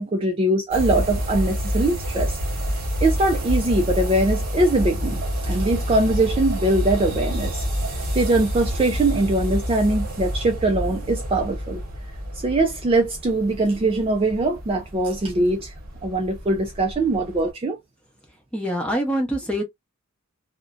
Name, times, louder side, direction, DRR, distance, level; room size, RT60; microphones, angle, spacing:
voice 1, 0.0-2.4 3.0-7.6 8.1-11.8 12.4-15.7 16.0-17.8, right 2 dB, 25° right, 0.3 m, -22 dB
sound 1, 0.7-17.5, equal, 40° right, 1.1 m, -28 dB
voice 2, 18.5-19.6, equal, 5° left, 0.7 m, -24 dB
2.6 x 2.1 x 2.3 m
head